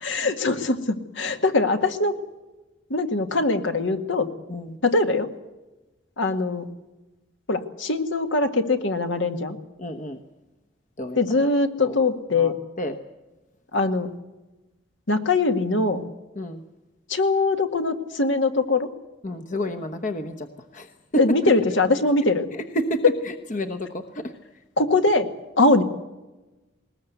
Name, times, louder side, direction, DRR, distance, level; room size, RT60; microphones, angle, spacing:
voice 1, 0.0-2.2 2.9-4.3 4.8-5.3 6.2-6.7 7.5-9.6 11.2-12.6 13.7-14.1 15.1-16.0 17.1-18.9 21.2-22.5 23.0-23.1 24.8-25.3 25.6-25.8, left 3 dB, 70° left, 7 dB, 1.8 m, -22 dB
voice 2, 9.8-10.2 11.0-11.2 11.8-12.0 12.3-13.0 16.4-16.6 19.2-20.5 20.7-20.9 21.1-21.5 22.7-24.3, equal, 40° left, 7 dB, 1.1 m, -29 dB
20.0 x 20.0 x 8.1 m, 1.1 s
head